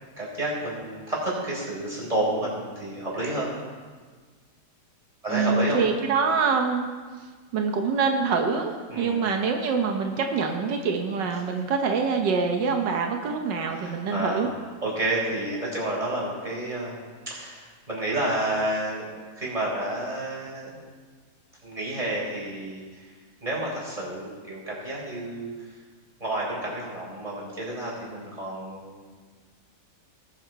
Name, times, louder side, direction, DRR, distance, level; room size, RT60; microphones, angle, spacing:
voice 1, 0.2-3.5 5.2-5.8 8.9-9.2 13.7-14.4 14.8-19.1 19.4-20.7 21.6-23.1 23.4-25.5 26.2-29.0, right 1 dB, 20° right, -6 dB, 4.3 m, -30 dB
voice 2, 5.3-6.9 7.5-14.5, right 5 dB, 85° right, 3 dB, 1.6 m, -25 dB
19.5 x 7.1 x 4.5 m, 1.5 s
omnidirectional pair, 1.9 m